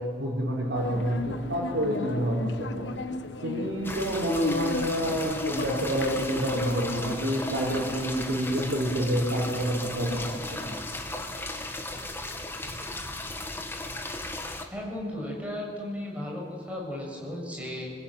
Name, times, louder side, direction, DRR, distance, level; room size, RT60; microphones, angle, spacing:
voice 1, 0.0-2.9 3.4-10.7 12.6-12.7, equal, 70° right, -6 dB, 5.6 m, -28 dB
sound 1, 0.7-7.2, left 2 dB, 70° left, 1.2 m, -34 dB
sound 2, 3.8-14.7, left 2 dB, 10° left, 1.8 m, -36 dB
voice 2, 14.7-17.9, left 1 dB, 5° right, -2 dB, 7.1 m, -35 dB
27.0 x 20.5 x 9.2 m, 2.3 s
head